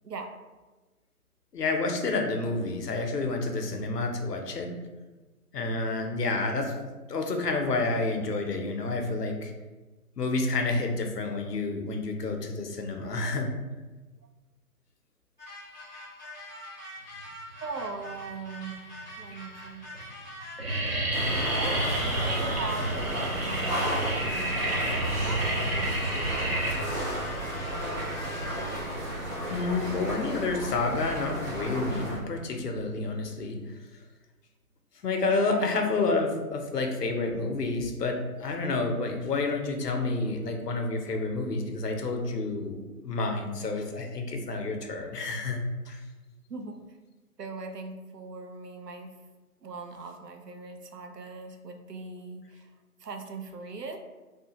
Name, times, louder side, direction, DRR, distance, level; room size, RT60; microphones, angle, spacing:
voice 1, 0.0-0.4 17.6-19.9 21.6-23.9 24.2-27.0 35.5-35.7 46.5-46.8 47.4-49.1 49.6-52.7 53.0-54.0, right 4 dB, 90° right, 5 dB, 0.6 m, -40 dB
voice 2, 1.5-4.7 5.5-6.7 7.1-9.5 10.2-13.5 29.4-33.6 35.0-45.6 45.9-46.0, left 3 dB, 85° left, 3 dB, 0.7 m, -29 dB
sound 1, 15.4-29.1, left 1 dB, 30° left, 0.6 m, -43 dB
sound 2, 18.0-18.6 19.2-19.3 19.6-20.0 20.2-29.2, right 1 dB, 40° right, 0.6 m, -30 dB
sound 3, 21.1-32.2, right 1 dB, 55° right, 1.3 m, -33 dB
3.2 x 2.2 x 2.9 m, 1.2 s
figure-of-eight pair, 145°, 47 cm